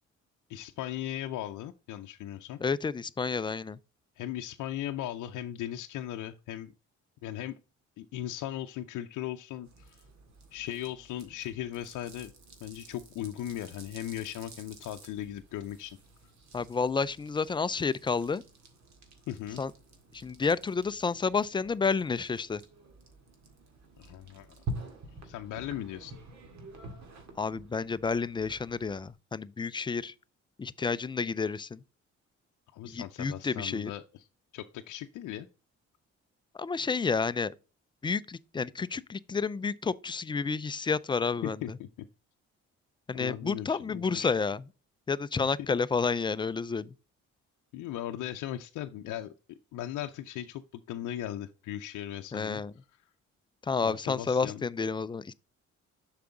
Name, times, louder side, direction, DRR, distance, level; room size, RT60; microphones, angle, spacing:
voice 1, 0.5-2.6 4.2-6.7 7.2-7.5 8.0-10.0 10.5-12.3 12.6-16.0 19.3-19.6 24.0-24.5 25.2-26.2 32.7-34.2 34.5-35.5 41.4-41.9 43.1-44.3 47.7-49.3 49.7-52.6 53.8-54.6, left 12 dB, 80° left, 0.6 m, -38 dB
voice 2, 2.6-3.8 16.5-18.4 19.6-19.7 20.1-22.6 27.4-30.1 30.6-31.8 32.9-33.9 36.6-37.5 38.0-41.6 43.1-44.6 45.1-46.9 52.3-52.7 53.7-55.3, left 5 dB, 15° left, 0.3 m, -30 dB
sound 1, 9.6-29.1, right 1 dB, 65° right, 1.9 m, -48 dB
6.9 x 4.9 x 3.8 m
cardioid pair, 90°, 30 cm